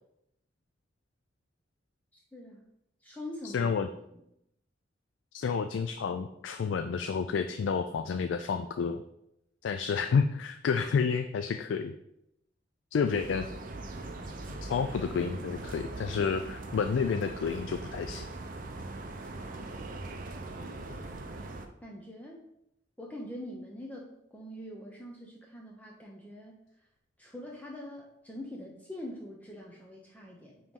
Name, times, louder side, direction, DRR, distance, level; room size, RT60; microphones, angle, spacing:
voice 1, 2.1-2.7 3.0-3.8 4.1-4.2 21.8-22.4 23.0-26.6 27.2-30.7, left 1 dB, 10° left, -1 dB, 0.6 m, -44 dB
voice 2, 3.4-3.9 5.3-9.0 9.6-11.9 12.9-13.5 14.5-18.3, left 5 dB, 80° left, 8 dB, 0.3 m, -30 dB
Medellin City Atmosphere Stereo, 13.0-21.7, right 2 dB, 45° right, 0.5 m, -41 dB
9.1 x 3.0 x 3.7 m, 0.80 s
head